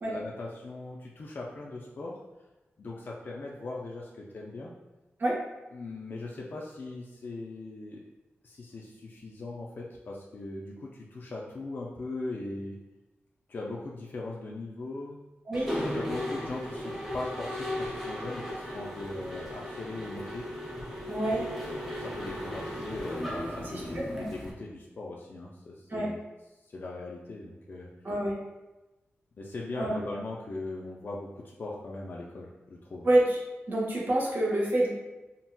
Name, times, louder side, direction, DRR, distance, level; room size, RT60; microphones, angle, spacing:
voice 1, 0.1-2.2 2.8-4.7 5.7-8.0 8.4-12.8 13.5-15.2 15.9-20.5 21.3-26.2 26.6-27.9 29.4-33.1, left 2 dB, 50° left, -3 dB, 0.4 m, -39 dB
Mechanisms, 15.5-24.5, equal, 5° right, 0.6 m, -36 dB
voice 2, 15.5-15.8 21.1-21.4 23.9-24.2 25.9-26.1 28.0-28.3 29.8-29.9 33.0-33.4 33.7-34.9, right 1 dB, 50° right, -4 dB, 0.8 m, -26 dB
3.8 x 2.1 x 2.2 m, 1.1 s
wide cardioid pair, 100°, 4 cm